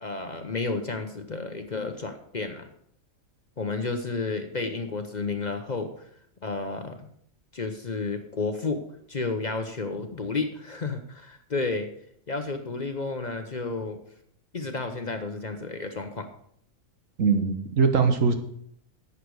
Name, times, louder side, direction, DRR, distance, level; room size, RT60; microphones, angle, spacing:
voice 1, 0.0-2.7 3.6-5.9 6.4-7.1 7.5-8.8 9.1-11.9 12.3-14.0 14.5-16.3, left 3 dB, 40° left, 6 dB, 0.8 m, -31 dB
voice 2, 17.2-18.4, right 5 dB, 75° right, 6 dB, 1.6 m, -21 dB
11.5 x 8.3 x 4.7 m, 0.69 s
omnidirectional pair, 1.4 m